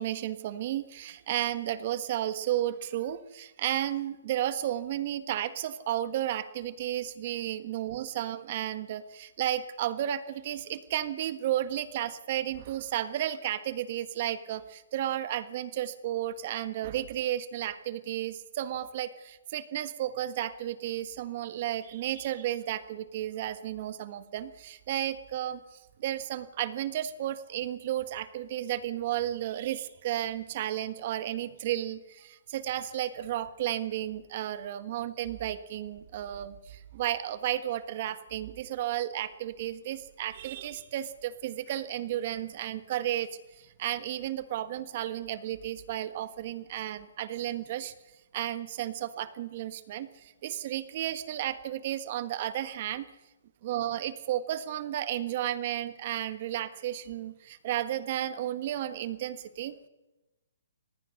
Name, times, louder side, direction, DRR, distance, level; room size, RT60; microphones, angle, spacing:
voice 1, 0.0-43.3 43.6-47.9 48.3-53.1 53.6-59.8, right 12 dB, 40° right, 12 dB, 1.4 m, -33 dB
24.5 x 19.0 x 6.5 m, 1.1 s
hypercardioid pair, 160°, 0 cm